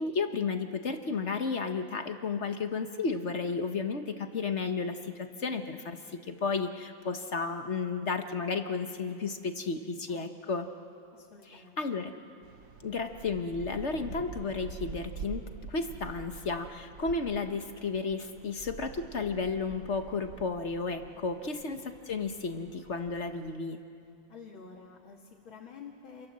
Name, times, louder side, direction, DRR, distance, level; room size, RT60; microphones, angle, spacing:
voice 1, 0.0-10.6 11.8-12.1 12.8-15.4 15.7-23.8, left 4 dB, 45° left, 7 dB, 1.1 m, -33 dB
voice 2, 10.1-10.6 11.1-11.8 21.1-21.3 24.3-26.3, left 5 dB, 85° left, -2 dB, 2.8 m, -50 dB
sound 1, 12.4-23.6, right 6 dB, 50° right, 1.2 m, -46 dB
28.0 x 28.0 x 7.5 m, 2.5 s
omnidirectional pair, 2.1 m